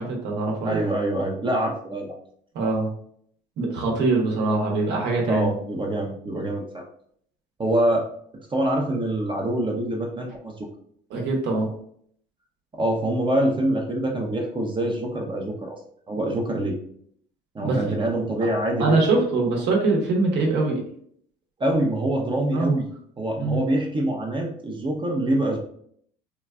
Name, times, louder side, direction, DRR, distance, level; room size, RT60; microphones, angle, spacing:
voice 1, 0.0-0.8 2.5-2.9 3.6-5.5 11.1-11.7 17.6-17.8 18.8-20.8 22.5-22.7 23.4-23.7, right 3 dB, 65° right, -1 dB, 1.0 m, -23 dB
voice 2, 0.6-2.1 5.3-6.8 7.6-8.1 8.3-10.7 12.7-15.8 16.1-16.8 17.5-19.2 21.6-22.9 23.2-25.6, right 1 dB, 25° right, 0 dB, 0.7 m, -25 dB
3.9 x 2.3 x 2.3 m, 0.64 s
supercardioid pair, 80°, 19 cm